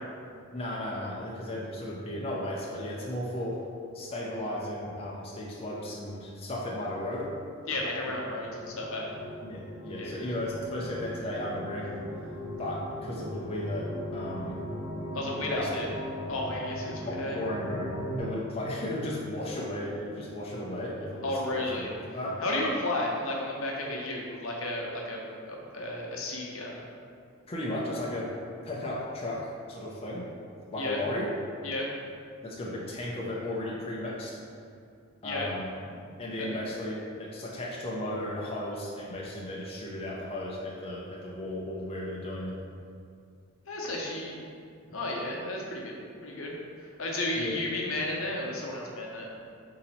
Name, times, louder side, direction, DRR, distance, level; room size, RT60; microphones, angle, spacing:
voice 1, 0.5-3.6 3.9-7.3 9.4-12.0 12.6-14.6 15.5-15.7 17.1-22.4 27.5-28.4 28.6-30.3 30.7-31.3 32.4-34.4 35.2-42.6 44.9-45.0 47.4-47.6, left 1 dB, 30° left, -4 dB, 0.5 m, -35 dB
voice 2, 7.7-9.1 10.0-10.3 15.1-15.9 16.3-17.4 21.2-21.9 22.4-25.2 25.5-26.8 30.8-31.0 31.6-31.9 35.2-35.5 36.4-36.5 43.7-44.4 44.9-49.3, left 1 dB, 70° left, -2 dB, 0.7 m, -33 dB
sound 1, 7.9-18.2, equal, 90° left, 0.9 m, -38 dB
4.1 x 2.8 x 4.1 m, 2.4 s
head